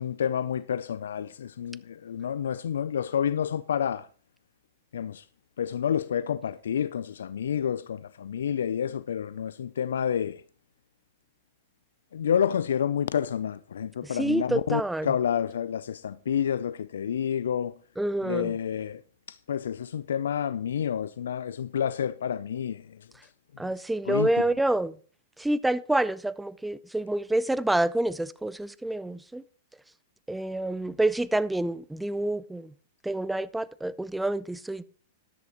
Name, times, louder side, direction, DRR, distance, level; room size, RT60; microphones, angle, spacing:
voice 1, 0.0-4.1 4.9-5.3 5.6-10.4 12.1-17.7 18.2-19.0 19.3-23.0 23.6-23.7 24.1-24.3, left 8 dB, 80° left, 0.4 m, -29 dB
voice 2, 14.0-15.1 18.0-18.5 23.6-25.0 25.4-29.4 30.3-32.7 33.0-34.8, right 1 dB, 5° right, 0.5 m, -28 dB
13.0 x 11.5 x 3.0 m
hypercardioid pair, 115°, 0 cm